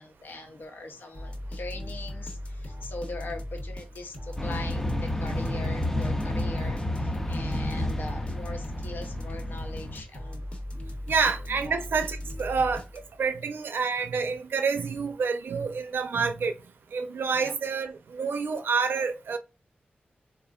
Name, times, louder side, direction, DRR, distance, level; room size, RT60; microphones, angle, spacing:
voice 1, 0.0-10.4 11.6-11.8 12.5-12.6 17.3-17.5, left 2 dB, 65° left, 0.7 m, -41 dB
sound 1, 1.1-13.3, left 1 dB, 35° left, 0.9 m, -38 dB
sound 2, 4.4-10.0, left 1 dB, 10° left, 0.5 m, -31 dB
voice 2, 11.1-16.5 16.9-19.4, right 5 dB, 85° right, 0.4 m, -28 dB
4.2 x 2.4 x 2.3 m
wide cardioid pair, 125°, 4 cm